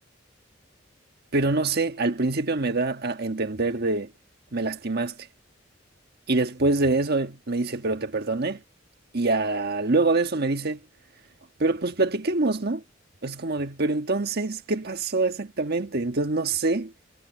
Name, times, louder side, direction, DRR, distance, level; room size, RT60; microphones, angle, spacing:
voice 1, 1.3-4.1 4.5-5.1 6.3-8.6 9.1-10.8 11.6-12.8 13.2-16.9, right 3 dB, 55° right, 1.4 m, -25 dB
head